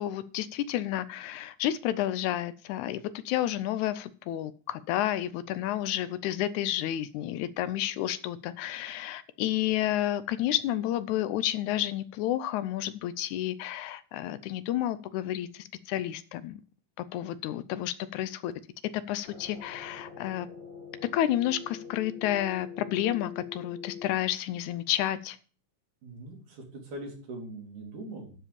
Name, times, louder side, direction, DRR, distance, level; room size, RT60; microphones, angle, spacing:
voice 1, 0.0-16.6 17.0-18.5 18.9-20.5 21.1-25.4, left 13 dB, 80° left, 15 dB, 1.9 m, -30 dB
sound 1, 19.2-24.1, left 6 dB, 40° left, 2.8 m, -44 dB
voice 2, 26.0-28.3, right 2 dB, 75° right, 0 dB, 4.3 m, -41 dB
12.5 x 5.0 x 6.8 m, 0.41 s
omnidirectional pair, 3.5 m